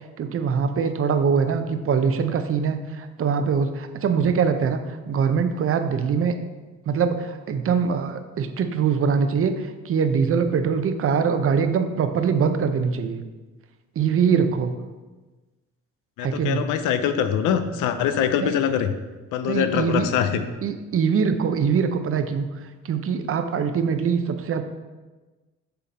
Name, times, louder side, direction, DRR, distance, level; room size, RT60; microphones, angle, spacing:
voice 1, 0.2-6.3 6.9-13.2 14.0-14.7 16.2-16.6 18.4-18.5 19.4-20.1 20.6-22.5 22.8-24.6, right 6 dB, 50° right, 8 dB, 0.6 m, -23 dB
voice 2, 16.2-18.9 19.3-20.4, left 8 dB, 90° left, 9 dB, 0.6 m, -23 dB
6.7 x 3.9 x 4.0 m, 1.2 s
cardioid pair, 90°, 30 cm